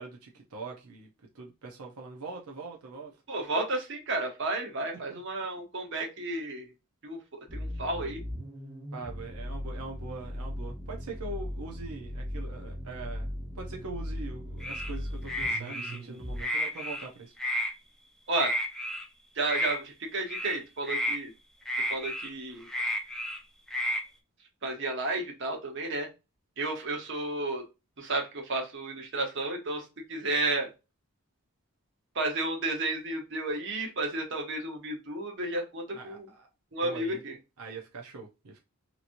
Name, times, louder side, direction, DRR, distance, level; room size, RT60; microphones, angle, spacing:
voice 1, 0.0-3.2 5.1-5.2 8.9-17.3 35.9-36.5 36.8-37.2 37.6-38.6, right 3 dB, 85° right, 0.7 m, -42 dB
voice 2, 3.3-6.7 7.0-7.2 7.5-8.2 18.3-18.5 19.3-21.3 21.8-22.7 24.6-26.1 26.6-27.6 28.0-30.7 32.1-36.3 36.7-37.4, right 2 dB, 55° right, 0.9 m, -32 dB
sound 1, 7.5-16.4, equal, 20° right, 0.9 m, -38 dB
sound 2, 14.6-14.9 15.3-16.0 16.4-17.1 17.4-17.7 18.3-19.0 19.4-19.8 20.3-20.6 20.8-21.2 21.7-22.3 22.7-23.4 23.7-24.0, equal, ahead, 0.4 m, -31 dB
3.0 x 2.8 x 2.5 m
head